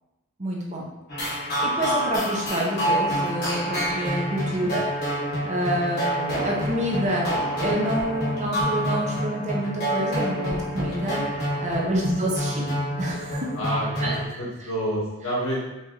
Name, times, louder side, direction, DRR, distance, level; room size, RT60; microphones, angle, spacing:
voice 1, 0.4-0.9 1.6-4.8 5.4-11.2 11.6-12.7 13.0-13.6 14.0-14.2, right 1 dB, 30° right, -2 dB, 0.8 m, -27 dB
sound 1, 1.1-14.2, equal, 45° left, 1.1 m, -27 dB
voice 2, 13.6-15.6, equal, 75° left, -5 dB, 1.5 m, -29 dB
4.5 x 3.6 x 3.0 m, 1.0 s
head